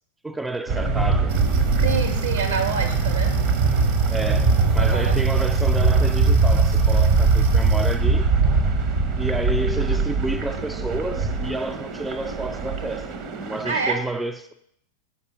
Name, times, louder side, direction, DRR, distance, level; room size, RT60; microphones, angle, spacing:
voice 1, 0.2-1.4 4.1-8.3 9.2-13.1 13.4-14.5, right 2 dB, 5° right, 0.3 m, -30 dB
sound 1, 0.7-13.9, right 4 dB, 35° right, 0.9 m, -22 dB
sound 2, 1.3-8.0, right 4 dB, 50° right, 1.2 m, -24 dB
voice 2, 1.8-3.4 4.8-5.2 13.6-14.0, right 5 dB, 70° right, 1.8 m, -27 dB
8.4 x 5.3 x 5.5 m
figure-of-eight pair, 90°, 0 cm